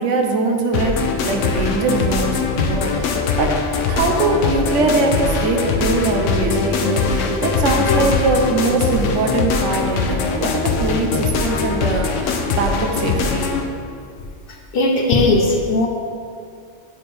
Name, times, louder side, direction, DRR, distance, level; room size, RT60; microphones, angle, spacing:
voice 1, 0.0-3.5 3.8-13.5, right 3 dB, 85° right, 3 dB, 1.0 m, -22 dB
sound 1, 0.7-13.7, left 4 dB, 85° left, 0.9 m, -21 dB
voice 2, 14.7-15.9, left 2 dB, 55° left, 1 dB, 0.9 m, -17 dB
9.1 x 4.3 x 3.3 m, 2.3 s
omnidirectional pair, 1.2 m